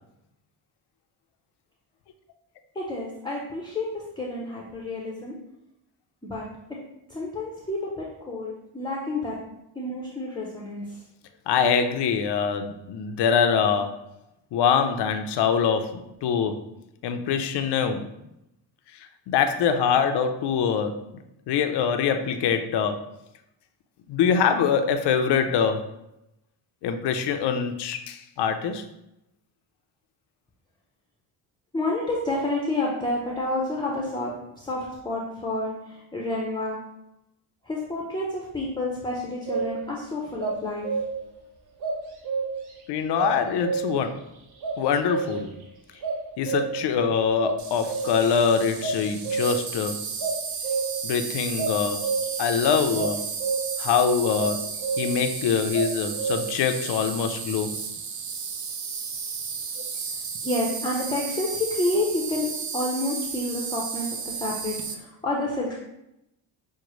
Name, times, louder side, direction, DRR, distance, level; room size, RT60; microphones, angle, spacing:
voice 1, 2.7-5.4 6.2-6.5 7.1-9.4 9.7-10.8 31.7-36.8 37.6-40.9 60.4-65.7, left 2 dB, 10° left, -3 dB, 0.6 m, -29 dB
voice 2, 11.5-14.0 14.5-16.7 17.0-18.1 19.3-21.1 21.5-23.0 24.1-25.8 26.8-28.8 42.9-44.2 44.8-45.5 46.4-50.1 51.0-52.1 52.4-53.3 53.8-54.7 55.0-57.8, left 6 dB, 60° left, 7 dB, 0.6 m, -24 dB
sound 1, 39.5-40.0 40.4-41.3 41.8-42.8 43.2-44.1 44.6-45.6 46.0-46.9 47.4-48.4 48.8-49.8 50.2-51.1 51.6-52.4 53.0-53.9 54.4-55.4 55.7-56.5, right 5 dB, 55° right, 1.0 m, -29 dB
Insect, 47.6-64.9, right 5 dB, 40° right, 0.6 m, -33 dB
6.2 x 2.1 x 3.0 m, 0.86 s
cardioid pair, 95°, 46 cm